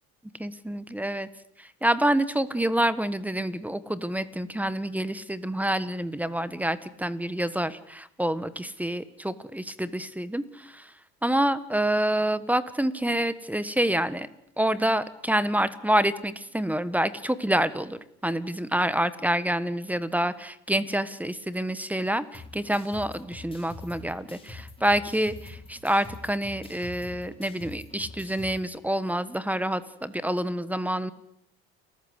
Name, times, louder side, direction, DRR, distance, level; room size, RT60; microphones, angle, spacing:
voice 1, 0.4-1.3 1.6-10.9 11.2-14.3 14.6-31.1, right 1 dB, 5° right, 15 dB, 1.4 m, -27 dB
sound 1, 22.3-28.6, left 3 dB, 15° left, 4.7 m, -45 dB
29.5 x 14.5 x 8.2 m, 0.75 s
supercardioid pair, 100°, 32 cm